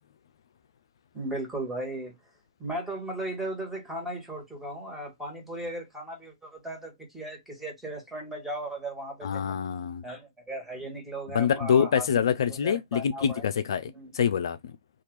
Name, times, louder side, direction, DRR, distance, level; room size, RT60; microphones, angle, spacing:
voice 1, 1.1-2.1 2.6-9.6 10.0-12.2 12.5-13.4 13.9-14.1, right 1 dB, 5° right, 1.5 m, -36 dB
voice 2, 9.2-10.0 11.3-14.6, left 7 dB, 65° left, 0.3 m, -25 dB
2.8 x 2.4 x 3.1 m
figure-of-eight pair, 120°, 3 cm